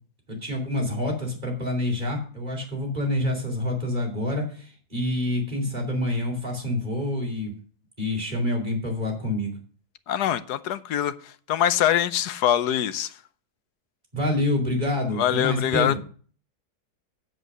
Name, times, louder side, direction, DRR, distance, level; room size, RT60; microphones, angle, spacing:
voice 1, 0.3-7.5 8.0-9.6 14.1-16.0, left 1 dB, 30° right, 3.9 m, -27 dB
voice 2, 10.1-13.1 15.2-16.0, left 11 dB, 90° left, 1.3 m, -24 dB
8.0 x 7.7 x 6.3 m
omnidirectional pair, 1.7 m